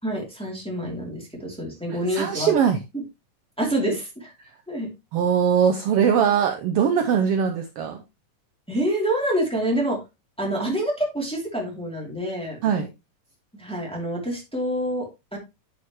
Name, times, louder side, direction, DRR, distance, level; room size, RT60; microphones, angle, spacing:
voice 1, 0.0-2.5 2.9-3.0 3.6-4.3 4.7-4.9 8.7-10.0 10.4-12.6 13.6-15.4, right 1 dB, ahead, -2 dB, 2.5 m, -27 dB
voice 2, 2.1-2.8 5.1-8.0 12.6-12.9, right 7 dB, 75° right, 7 dB, 1.4 m, -21 dB
10.0 x 5.8 x 3.0 m, 0.24 s
omnidirectional pair, 3.6 m